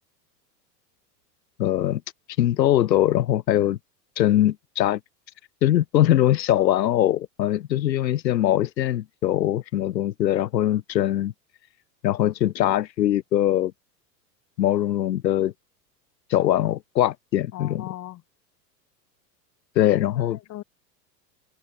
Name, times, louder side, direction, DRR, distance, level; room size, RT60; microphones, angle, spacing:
voice 1, 1.6-2.0 2.4-3.8 4.2-5.0 5.6-11.3 12.0-13.7 14.6-15.5 16.3-17.9 19.8-20.4, left 12 dB, 85° left, 1.9 m, -22 dB
voice 2, 17.5-18.2 20.2-20.6, left 14 dB, 35° left, 1.3 m, -38 dB
hypercardioid pair, 105°, 50 cm